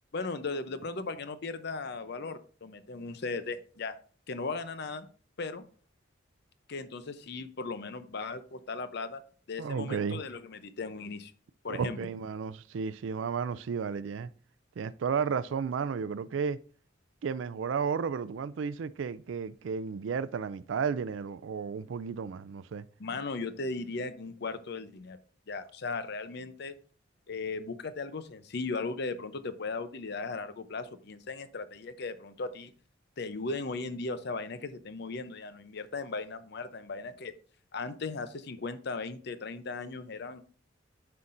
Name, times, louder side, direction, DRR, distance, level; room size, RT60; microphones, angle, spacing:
voice 1, 0.1-3.9 4.3-5.1 5.4-5.6 6.7-9.2 9.5-11.3 11.6-12.0 23.0-25.2 25.5-26.7 27.3-32.7 33.2-37.3 37.7-40.4, left 3 dB, 60° left, 0.6 m, -37 dB
voice 2, 9.6-10.2 11.7-14.3 14.8-16.6 17.2-22.9, right 6 dB, 75° right, 0.4 m, -33 dB
9.6 x 5.7 x 2.6 m
head